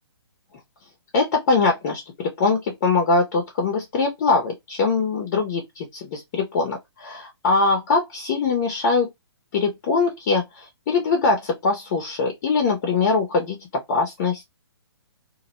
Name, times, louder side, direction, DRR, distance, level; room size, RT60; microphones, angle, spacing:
voice 1, 1.1-9.1 9.5-13.6 13.9-14.4, left 4 dB, 35° left, 0.7 m, -22 dB
2.3 x 2.0 x 2.9 m
figure-of-eight pair, 130°, 14 cm